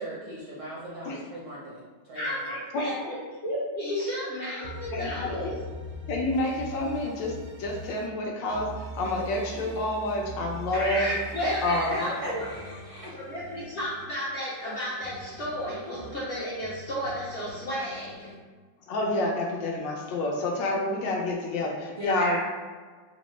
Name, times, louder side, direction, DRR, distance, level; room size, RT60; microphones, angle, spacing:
voice 1, 0.0-1.8 2.1-2.4 11.4-12.3 12.6-13.1 22.0-22.4, right 1 dB, 60° right, -6 dB, 0.8 m, -37 dB
voice 2, 2.1-3.2 3.4-5.6 10.7-12.4 13.1-18.3 22.2-22.4, equal, 55° left, -9 dB, 0.8 m, -32 dB
voice 3, 2.7-3.1 4.9-5.5 6.1-8.7 8.9-11.1 11.6-12.1 18.9-22.4, left 2 dB, 80° left, 0 dB, 1.3 m, -28 dB
sound 1, 4.6-8.1 8.5-14.1 14.5-18.4, right 1 dB, 85° right, 1.4 m, -42 dB
4.5 x 2.0 x 3.0 m, 1.5 s
omnidirectional pair, 2.0 m